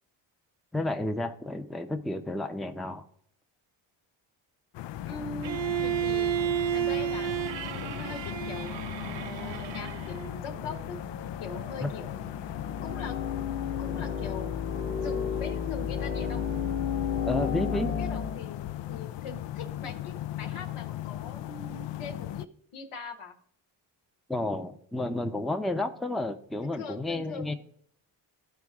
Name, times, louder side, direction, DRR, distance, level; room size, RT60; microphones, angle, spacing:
voice 1, 0.7-3.0 11.8-11.9 17.3-17.9 24.3-27.5, left 2 dB, ahead, 6 dB, 0.6 m, -31 dB
sound 1, 4.7-22.5, left 13 dB, 60° left, 0.5 m, -38 dB
sound 2, 4.9-18.4, left 7 dB, 25° left, 1.0 m, -35 dB
voice 2, 5.0-6.4 6.7-8.8 9.4-11.0 11.4-12.3 12.8-14.5 15.0-16.5 17.7-22.5 22.7-23.4 26.6-27.6, left 4 dB, 80° left, 5 dB, 1.3 m, -42 dB
Bowed string instrument, 5.4-10.4, right 11 dB, 60° right, 0.6 m, -31 dB
13.0 x 4.4 x 3.6 m, 0.65 s
cardioid pair, 65°, 49 cm